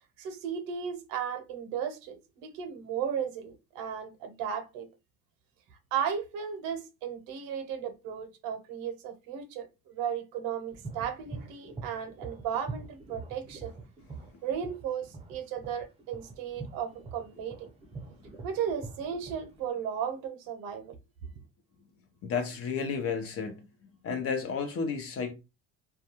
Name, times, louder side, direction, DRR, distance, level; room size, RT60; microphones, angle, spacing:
voice 1, 0.2-4.9 5.9-13.7 14.4-17.7 18.4-21.0, right 8 dB, 90° right, 0.7 m, -35 dB
sound 1, 10.7-19.7, right 3 dB, 20° right, 0.5 m, -44 dB
voice 2, 22.2-23.6 24.0-25.3, left 5 dB, 45° left, 0.7 m, -32 dB
2.3 x 2.2 x 2.8 m
cardioid pair, 115°, 33 cm